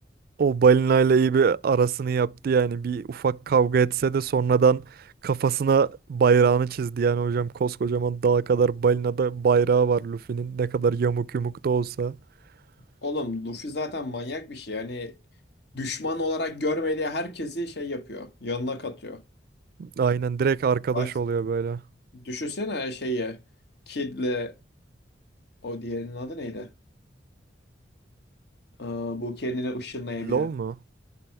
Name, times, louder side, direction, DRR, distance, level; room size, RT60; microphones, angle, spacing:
voice 1, 0.4-4.8 5.2-12.2 19.8-21.8 30.2-30.7, right 5 dB, 55° right, 0.3 m, -22 dB
voice 2, 13.0-15.1 15.7-19.2 20.9-21.1 22.1-23.4 23.9-24.5 25.6-26.7 28.8-30.5, left 2 dB, 60° left, 1.1 m, -31 dB
11.0 x 4.1 x 4.6 m
head